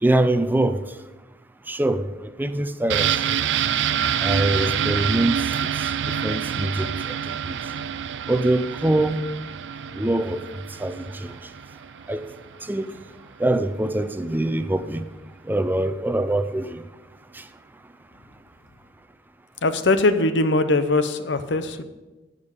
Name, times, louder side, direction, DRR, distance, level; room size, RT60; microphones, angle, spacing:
voice 1, 0.0-0.8 1.7-3.4 4.2-5.7 6.2-7.6 8.3-9.2 10.0-10.4 10.8-11.3 12.1-12.2 12.7-13.0 13.4-15.0 15.5-16.8, right 1 dB, 10° right, 0.5 m, -24 dB
sound 1, 2.9-12.5 12.8-12.9, right 8 dB, 80° right, 0.4 m, -27 dB
voice 2, 19.6-21.8, left 2 dB, 85° left, 0.8 m, -21 dB
15.0 x 5.2 x 5.3 m
head